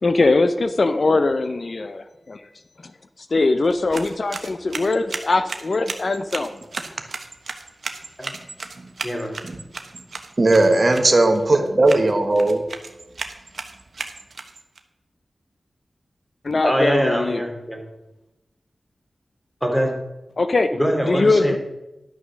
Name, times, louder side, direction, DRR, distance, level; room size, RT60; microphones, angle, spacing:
voice 1, 0.0-2.5 3.3-6.6 16.4-17.4 20.4-20.7 21.1-21.6, left 3 dB, 60° left, 10 dB, 0.6 m, -21 dB
sound 1, 3.6-14.8, right 3 dB, 70° right, 1.1 m, -36 dB
voice 2, 10.4-12.6, right 2 dB, 50° right, 5 dB, 1.3 m, -17 dB
voice 3, 11.5-11.9 16.6-17.8 19.6-19.9 20.7-21.6, equal, 10° left, 1 dB, 3.0 m, -23 dB
11.5 x 6.3 x 6.3 m, 0.98 s
cardioid pair, 50°, 0 cm